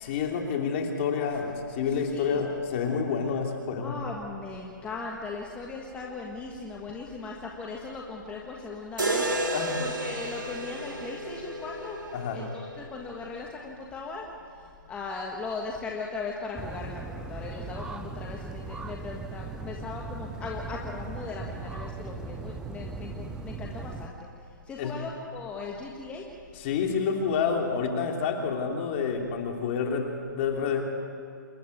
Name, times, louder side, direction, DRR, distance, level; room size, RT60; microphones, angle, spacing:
voice 1, 0.0-3.9 9.5-9.8 12.1-12.4 24.8-25.0 26.5-30.8, left 6 dB, 35° left, 2 dB, 3.0 m, -28 dB
voice 2, 2.1-2.4 3.8-9.5 9.8-12.0 12.3-14.3 14.9-24.1 24.7-26.2, left 4 dB, 10° left, -1 dB, 1.6 m, -38 dB
sound 1, 9.0-13.0, right 1 dB, 85° right, 3.6 m, -32 dB
sound 2, 16.6-24.1, right 3 dB, 5° right, 0.6 m, -38 dB
27.5 x 11.5 x 9.3 m, 2.5 s
hypercardioid pair, 145°, 11 cm